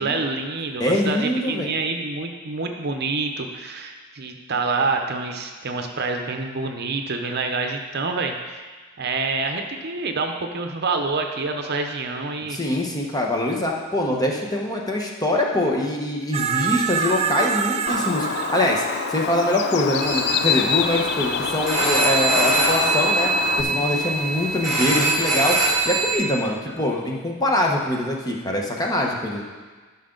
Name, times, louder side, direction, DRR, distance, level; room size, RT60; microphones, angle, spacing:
voice 1, 0.0-8.6 9.0-12.6 26.6-26.9, right 3 dB, 50° right, 4 dB, 0.7 m, -27 dB
voice 2, 0.8-1.7 12.5-18.8 19.1-23.3 23.6-25.6 25.8-29.4, left 1 dB, 20° left, -1 dB, 1.0 m, -23 dB
sound 1, 16.3-20.8 23.5-23.8, right 6 dB, 30° right, 0.3 m, -27 dB
Bird, 17.9-23.6, left 7 dB, 50° left, 0.4 m, -26 dB
sound 2, 20.0-26.1, right 3 dB, ahead, 2.4 m, -23 dB
12.5 x 5.9 x 3.9 m, 1.4 s
head